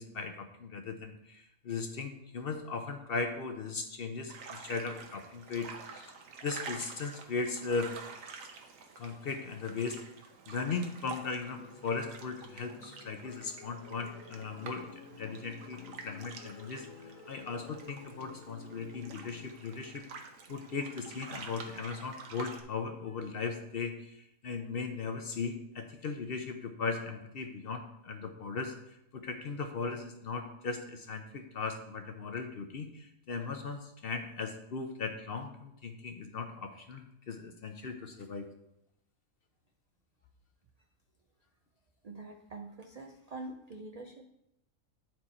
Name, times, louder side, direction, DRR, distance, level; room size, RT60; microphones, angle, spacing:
voice 1, 0.0-6.1 6.4-7.9 9.0-10.0 10.5-14.9 15.2-15.8 16.0-16.8 17.3-20.0 20.5-28.7 29.1-38.5, left 4 dB, 55° left, 5 dB, 0.7 m, -38 dB
sound 1, 4.3-22.6, right 5 dB, 75° right, 1.3 m, -49 dB
sound 2, 11.6-20.8, left 5 dB, 80° left, 1.2 m, -52 dB
voice 2, 42.0-44.2, right 2 dB, 55° right, 2 dB, 0.4 m, -45 dB
9.0 x 4.5 x 4.2 m, 0.83 s
omnidirectional pair, 1.4 m